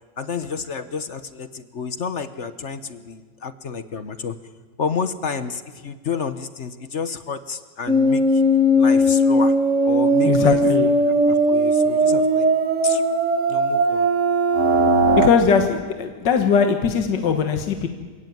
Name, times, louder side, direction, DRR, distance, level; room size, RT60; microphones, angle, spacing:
voice 1, 0.2-4.4 4.8-8.4 8.8-9.5 9.8-10.6 11.2-12.5 12.8-13.0 13.5-14.1, left 5 dB, 45° left, 11 dB, 1.1 m, -30 dB
sound 1, 7.9-15.3, right 1 dB, 40° right, 2.0 m, -18 dB
voice 2, 10.3-10.9 15.2-17.9, left 6 dB, 70° left, 5 dB, 2.0 m, -20 dB
27.5 x 16.5 x 9.3 m, 1.5 s
omnidirectional pair, 2.0 m